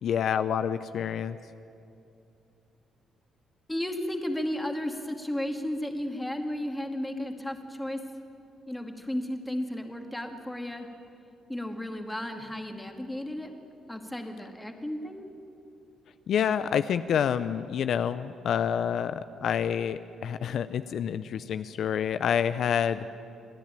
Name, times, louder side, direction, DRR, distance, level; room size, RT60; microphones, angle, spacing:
voice 1, 0.0-1.4 16.3-23.0, left 8 dB, 65° left, 12 dB, 0.5 m, -28 dB
voice 2, 3.7-8.0 8.7-10.9 11.5-13.5 13.9-15.3, left 1 dB, 5° left, 4 dB, 2.1 m, -34 dB
28.0 x 10.5 x 8.9 m, 2.6 s
cardioid pair, 90°, 0 cm